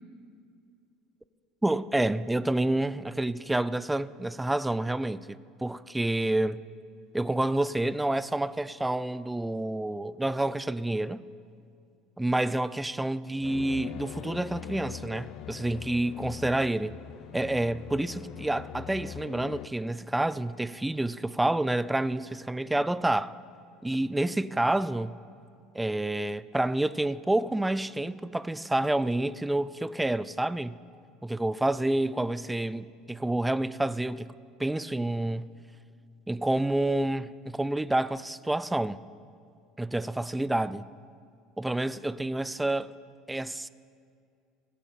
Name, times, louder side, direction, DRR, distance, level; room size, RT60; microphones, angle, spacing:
voice 1, 1.6-6.6 7.1-11.2 12.2-17.0 17.3-23.4 23.8-25.2 25.7-30.8 31.2-34.3 34.6-35.5 36.3-39.0 39.8-40.9 41.6-43.0 43.3-43.7, right 1 dB, 10° right, 0.3 m, -28 dB
sound 1, 13.4-19.7, left 11 dB, 60° left, 0.4 m, -42 dB
16.5 x 8.2 x 5.5 m
supercardioid pair, 105°, 0 cm